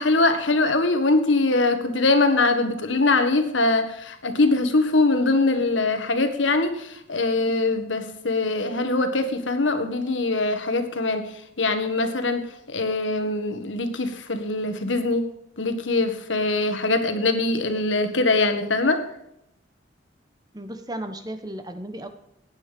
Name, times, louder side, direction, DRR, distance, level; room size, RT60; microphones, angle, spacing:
voice 1, 0.0-15.3 15.6-19.0, left 2 dB, 85° left, 8 dB, 1.7 m, -22 dB
voice 2, 20.5-22.1, right 1 dB, 20° right, 8 dB, 1.1 m, -34 dB
15.5 x 9.5 x 5.3 m, 0.78 s
head